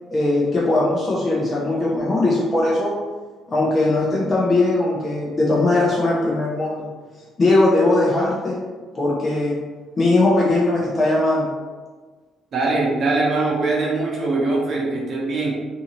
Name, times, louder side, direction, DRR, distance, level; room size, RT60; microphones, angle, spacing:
voice 1, 0.1-3.0 3.5-6.9 7.4-8.6 8.9-9.6 10.0-11.5, left 2 dB, 35° left, -6 dB, 0.8 m, -19 dB
voice 2, 12.5-15.5, right 3 dB, 55° right, -4 dB, 0.7 m, -22 dB
2.6 x 2.6 x 2.9 m, 1.4 s
supercardioid pair, 60°, 0 cm